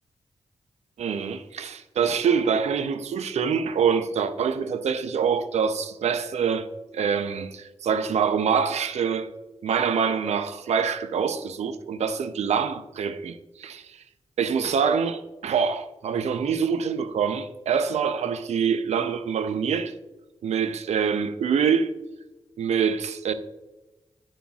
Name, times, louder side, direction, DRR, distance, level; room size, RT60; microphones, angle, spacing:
voice 1, 1.0-9.3 9.6-14.0 14.4-19.9 20.4-21.9 22.6-23.3, right 6 dB, 85° right, 0.6 m, -25 dB
9.1 x 7.3 x 2.3 m
cardioid pair, 65°, 11 cm